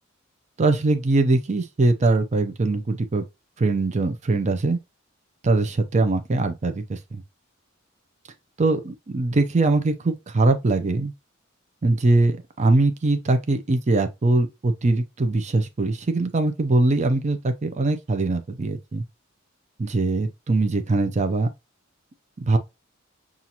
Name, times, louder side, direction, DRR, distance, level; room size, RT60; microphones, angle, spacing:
voice 1, 0.6-3.2 3.6-4.8 5.4-7.2 8.6-11.1 11.8-19.0 19.8-21.5 22.4-22.6, right 2 dB, 35° right, 0.5 m, -22 dB
5.6 x 2.5 x 2.8 m
head